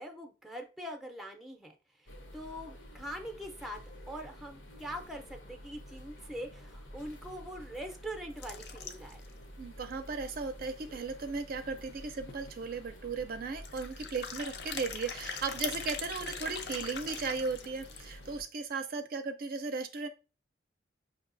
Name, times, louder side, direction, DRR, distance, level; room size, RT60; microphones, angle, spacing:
voice 1, 0.0-1.8 2.3-3.8 4.1-9.2, equal, ahead, 4 dB, 0.5 m, -43 dB
sound 1, 2.1-18.4, equal, 85° left, 0.9 m, -50 dB
sound 2, 8.4-9.3 9.8-9.9 10.0-10.1 10.6-10.7 11.9-12.0 12.3-12.5 13.6-18.2, left 6 dB, 65° left, 0.5 m, -41 dB
voice 2, 9.6-20.1, right 4 dB, 50° right, 8 dB, 0.4 m, -36 dB
5.3 x 2.7 x 2.5 m, 0.31 s
head